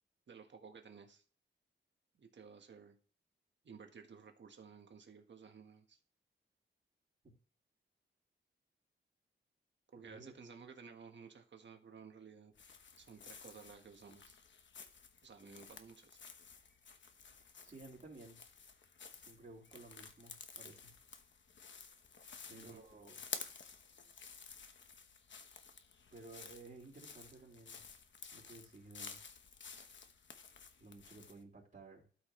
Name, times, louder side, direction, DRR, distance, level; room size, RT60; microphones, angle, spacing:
voice 1, 0.3-1.2 2.1-3.0 3.6-6.0 9.9-12.5 13.0-14.4 15.2-16.2 22.5-22.8, right 5 dB, 65° right, 4 dB, 1.5 m, -55 dB
voice 2, 10.0-10.3 17.3-18.4 19.2-20.9 22.5-23.2 26.1-27.8 28.3-29.2 30.8-32.0, right 3 dB, 40° right, -10 dB, 3.6 m, -55 dB
sound 1, 12.5-31.4, left 5 dB, 70° left, 1.1 m, -53 dB
12.5 x 6.0 x 3.2 m, 0.41 s
wide cardioid pair, 125°, 20 cm